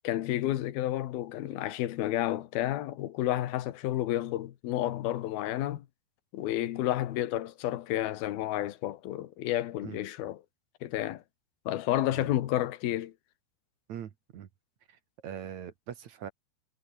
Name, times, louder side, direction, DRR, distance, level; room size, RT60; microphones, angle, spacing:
voice 1, 0.0-5.8 6.3-10.4 10.8-11.2 11.7-13.1, left 13 dB, 65° left, 3.0 m, -31 dB
voice 2, 13.9-14.5 14.9-16.3, right 9 dB, 55° right, 2.2 m, -42 dB
omnidirectional pair, 5.1 m